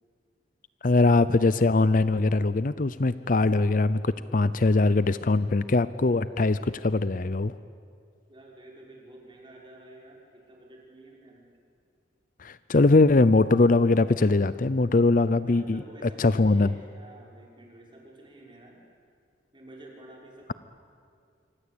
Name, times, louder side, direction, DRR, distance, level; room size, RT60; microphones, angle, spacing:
voice 1, 0.8-7.5 12.4-15.8 16.2-16.7, left 3 dB, 45° left, 15 dB, 0.6 m, -21 dB
voice 2, 8.3-11.5 15.4-18.8 19.5-20.5, right 1 dB, 25° right, -2 dB, 5.8 m, -50 dB
27.0 x 25.0 x 8.7 m, 2.2 s
head